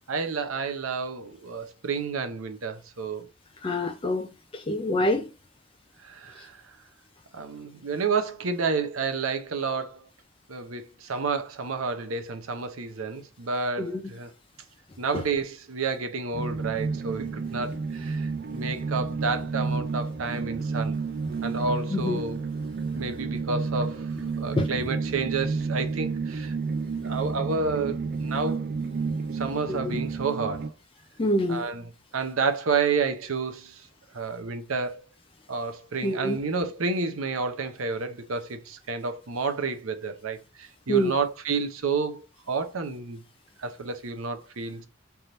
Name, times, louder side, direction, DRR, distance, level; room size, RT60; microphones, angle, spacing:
voice 1, 0.1-3.3 6.0-6.6 7.3-10.1 10.5-14.3 15.0-21.0 21.4-22.5 22.8-24.1 24.4-26.6 27.0-28.6 29.3-30.7 31.5-31.8 32.1-33.9 34.1-35.0 35.5-43.2 43.6-44.9, right 4 dB, 90° right, 0.8 m, -30 dB
voice 2, 3.6-5.3 13.8-14.0 15.1-15.2 21.9-22.2 24.6-24.7 29.7-30.0 31.2-31.6 36.0-36.4 40.9-41.1, left 1 dB, 25° left, 0.4 m, -26 dB
sound 1, 16.3-30.7, right 4 dB, 50° right, 0.4 m, -31 dB
3.5 x 3.0 x 3.8 m
head